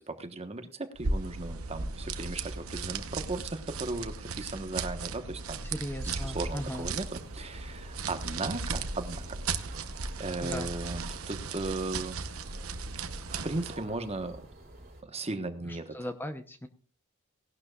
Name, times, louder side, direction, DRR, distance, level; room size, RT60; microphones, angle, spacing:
voice 1, 0.0-5.6 6.0-9.4 10.2-12.2 13.4-14.4 15.0-16.1, right 2 dB, 30° right, 8 dB, 1.2 m, -36 dB
sound 1, 0.9-13.8, right 4 dB, 85° right, 1.0 m, -36 dB
voice 2, 5.7-6.9 10.4-10.7 15.9-16.7, equal, 10° left, 7 dB, 0.8 m, -37 dB
sound 2, 6.0-15.0, right 1 dB, 50° right, 3.6 m, -48 dB
18.0 x 11.5 x 2.4 m, 0.40 s
head